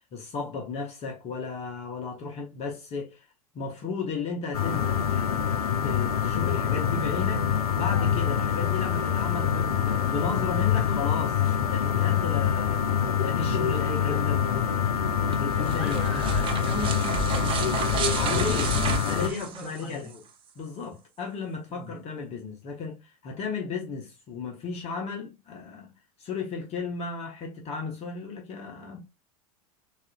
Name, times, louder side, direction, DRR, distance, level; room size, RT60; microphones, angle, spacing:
voice 1, 0.1-3.3 3.5-5.4 5.8-14.6 15.4-16.3 18.1-20.2 20.6-25.9 26.2-29.0, left 4 dB, 35° left, 0.9 m, -35 dB
sound 1, 4.5-19.3, left 8 dB, 80° left, 0.4 m, -25 dB
sound 2, 15.2-20.1, right 5 dB, 30° right, 0.6 m, -31 dB
voice 2, 15.8-20.1 21.7-21.9, equal, 5° right, 1.2 m, -39 dB
4.1 x 2.5 x 2.2 m
figure-of-eight pair, 85°, 19 cm